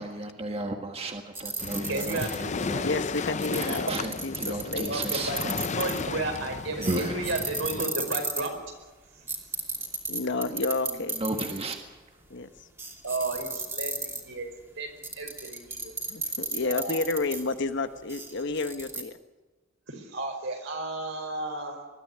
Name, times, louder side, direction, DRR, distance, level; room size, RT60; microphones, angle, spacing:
voice 1, 0.0-2.9 3.5-5.6 6.8-7.2 11.1-11.9, right 2 dB, 30° right, 4 dB, 1.7 m, -34 dB
sound 1, 1.4-2.6 3.4-6.2 6.8-8.5 9.3-11.7 12.2-12.3 12.8-14.4 15.0-17.5 18.1-19.0, right 3 dB, 15° right, 3.0 m, -33 dB
Waves surf, 1.6-7.9, left 4 dB, 35° left, 0.5 m, -34 dB
voice 2, 1.9-2.5 3.9-4.0 4.9-5.4 5.7-8.6 13.0-14.5 14.7-16.0 16.6-17.0 19.9-21.8, right 2 dB, 70° right, 3 dB, 4.9 m, -33 dB
voice 3, 2.8-3.9 4.2-5.0 10.1-11.1 12.3-12.5 16.1-19.2, left 3 dB, 65° left, 9 dB, 1.2 m, -30 dB
21.5 x 13.0 x 10.0 m, 1.2 s
head